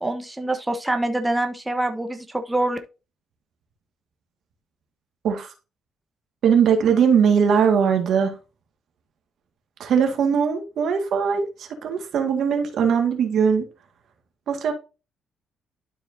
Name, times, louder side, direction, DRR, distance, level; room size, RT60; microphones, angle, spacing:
voice 1, 0.0-2.8, right 1 dB, 10° right, 1.1 m, -25 dB
voice 2, 6.4-8.3 9.8-13.7 14.5-14.7, right 7 dB, 70° right, 1.8 m, -20 dB
12.0 x 4.5 x 2.7 m
cardioid pair, 90°, 0 cm